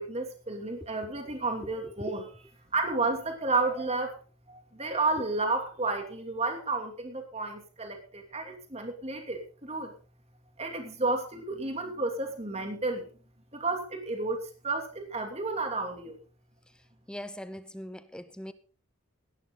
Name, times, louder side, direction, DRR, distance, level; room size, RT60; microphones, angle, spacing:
voice 1, 0.0-2.2 2.7-4.2 4.5-9.9 10.6-13.1 13.5-16.2, right 3 dB, 30° right, 5 dB, 2.8 m, -31 dB
voice 2, 1.6-2.3 17.1-18.5, equal, 5° left, 13 dB, 0.7 m, -41 dB
17.5 x 11.5 x 3.9 m, 0.38 s
head